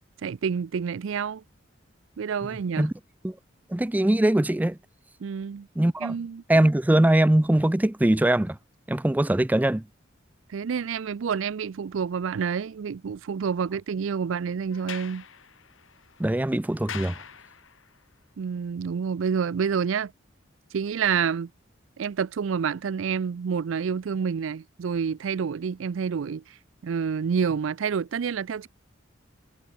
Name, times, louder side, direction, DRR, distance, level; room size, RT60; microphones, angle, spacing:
voice 1, 0.2-1.4 2.2-2.9 5.2-5.7 6.0-6.4 10.5-15.2 18.4-20.1 20.7-21.5 22.0-26.5 26.8-28.7, right 6 dB, 80° right, 0.4 m, -28 dB
voice 2, 3.7-4.8 5.8-6.1 6.5-8.6 8.9-9.8 16.2-17.1, right 1 dB, 10° right, 0.3 m, -21 dB
Sliding door, 14.7-18.0, left 7 dB, 85° left, 2.0 m, -43 dB
head